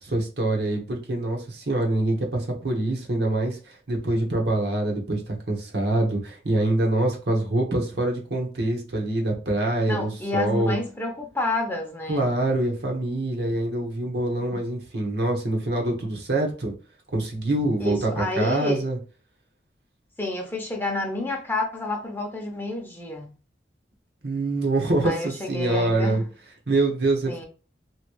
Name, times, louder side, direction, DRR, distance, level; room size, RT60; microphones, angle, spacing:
voice 1, 0.0-10.8 12.1-16.7 17.1-19.0 24.2-26.2 26.7-27.4, right 2 dB, 65° right, 1.1 m, -25 dB
voice 2, 9.9-12.3 17.8-18.8 20.2-23.3 25.0-26.2 27.3-27.4, left 2 dB, 10° left, 0.6 m, -29 dB
3.1 x 2.8 x 3.0 m
head